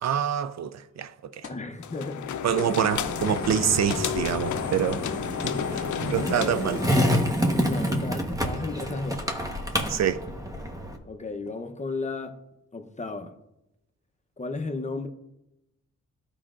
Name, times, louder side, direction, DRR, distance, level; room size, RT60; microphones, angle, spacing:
voice 1, 0.0-1.5 2.4-5.1 5.4-6.8 9.9-10.3, right 9 dB, 60° right, 0.5 m, -26 dB
sound 1, 1.4-1.7 2.1-2.2 2.6-8.0, left 2 dB, 50° left, 1.4 m, -49 dB
voice 2, 1.5-2.3 6.1-6.7 7.6-9.2 11.0-12.4 12.7-13.4 14.4-15.1, left 3 dB, 25° left, 0.7 m, -34 dB
sound 2, 1.8-7.3, left 9 dB, 75° left, 0.5 m, -32 dB
Skateboard, 2.9-11.0, equal, 10° right, 1.1 m, -28 dB
12.5 x 4.9 x 2.5 m
cardioid pair, 70°, 30 cm